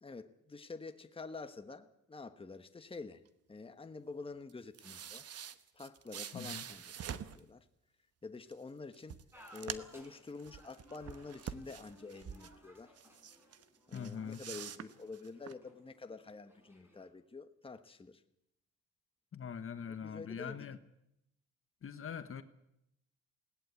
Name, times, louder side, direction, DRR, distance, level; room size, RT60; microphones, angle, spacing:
voice 1, 0.0-3.2 3.5-5.2 5.7-6.8 7.1-7.6 8.2-9.2 9.5-12.9 13.9-18.2 19.9-20.7, left 4 dB, 20° left, 1.3 m, -48 dB
sound 1, 4.5-7.4 8.5-8.6 8.9-10.1 10.4-12.5 13.0-13.6 13.9-15.5, right 8 dB, 55° right, 1.1 m, -46 dB
voice 2, 6.3-6.7 13.9-14.4 19.3-20.8 21.8-22.4, left 7 dB, 45° left, 1.3 m, -42 dB
sound 2, 9.3-17.1, equal, 10° right, 5.9 m, -61 dB
20.5 x 17.5 x 8.3 m
cardioid pair, 90°, 30 cm